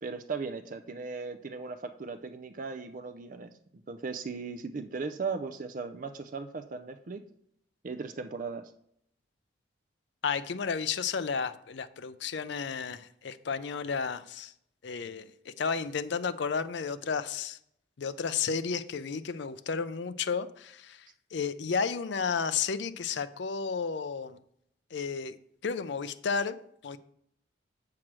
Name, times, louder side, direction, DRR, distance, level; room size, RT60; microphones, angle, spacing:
voice 1, 0.0-3.5 3.9-7.2 7.8-8.7, right 4 dB, 40° right, 8 dB, 0.4 m, -37 dB
voice 2, 10.2-14.5 14.8-17.6 18.0-24.4 24.9-25.3 25.6-26.6 26.8-27.0, left 5 dB, 65° left, 12 dB, 0.5 m, -32 dB
7.3 x 4.7 x 6.1 m, 0.72 s
head